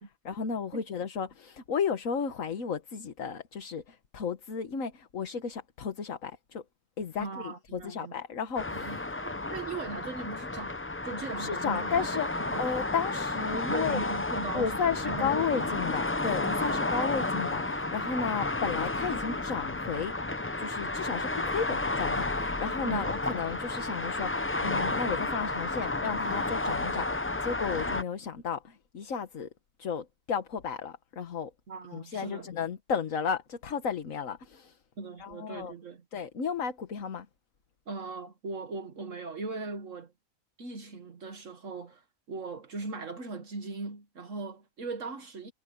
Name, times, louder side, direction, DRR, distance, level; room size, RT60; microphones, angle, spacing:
voice 1, 0.2-6.6 7.0-9.1 11.4-14.1 14.5-20.1 20.6-29.5 29.8-31.5 31.9-34.8 35.2-35.7 36.1-37.3, left 6 dB, 75° left, 1.7 m, -33 dB
voice 2, 7.2-8.1 8.7-12.2 12.5-12.6 13.5-15.6 16.6-16.7 22.8-23.2 31.7-32.5 35.0-36.0 37.9-40.1 40.6-45.5, right 3 dB, 65° right, 1.8 m, -39 dB
sound 1, 8.6-28.0, left 2 dB, 20° left, 0.4 m, -32 dB
omnidirectional pair, 1.4 m